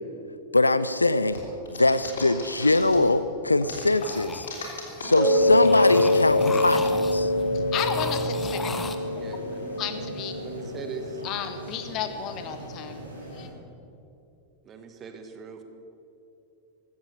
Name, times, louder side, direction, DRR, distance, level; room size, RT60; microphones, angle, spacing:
voice 1, 0.5-1.4 1.7-4.5 5.0-7.3, left 2 dB, 80° left, 15 dB, 0.5 m, -22 dB
sound 1, 1.3-3.2 3.6-6.7, left 4 dB, 65° left, 3.5 m, -38 dB
sound 2, 3.8-5.0 5.4-7.4 7.7-9.0, left 4 dB, 15° left, 1.1 m, -36 dB
sound 3, 5.1-13.4, left 1 dB, 80° right, 3.7 m, -26 dB
voice 2, 7.5-8.7 9.8-10.3 11.2-13.5, left 9 dB, 40° left, 9 dB, 1.5 m, -33 dB
voice 3, 8.6-9.8 10.4-11.2 14.6-15.6, right 4 dB, 25° right, 6 dB, 1.8 m, -41 dB
15.5 x 13.5 x 6.9 m, 2.7 s
figure-of-eight pair, 90°, 0 cm